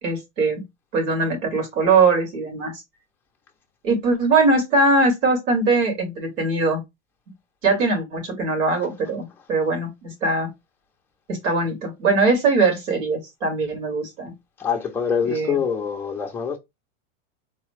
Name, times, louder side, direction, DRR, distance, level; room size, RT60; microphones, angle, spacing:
voice 1, 0.0-0.6 0.9-2.7 3.8-6.8 7.6-10.5 11.3-14.3 15.3-15.6, right 3 dB, 85° right, 2.6 m, -21 dB
voice 2, 14.6-16.6, left 7 dB, 5° left, 0.4 m, -25 dB
4.0 x 2.3 x 3.1 m
supercardioid pair, 150°, 37 cm